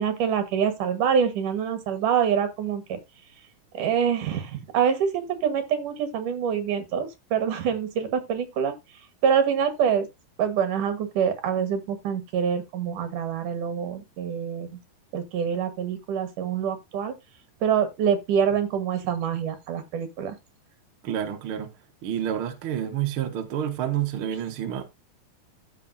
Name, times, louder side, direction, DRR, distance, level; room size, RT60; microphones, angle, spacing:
voice 1, 0.0-3.0 3.7-8.7 9.2-10.1 10.4-14.7 15.1-17.1 17.6-20.4, right 7 dB, 60° right, 2.8 m, -25 dB
voice 2, 21.0-21.7 22.0-24.8, right 10 dB, 75° right, 1.2 m, -29 dB
14.5 x 5.5 x 2.7 m
omnidirectional pair, 4.5 m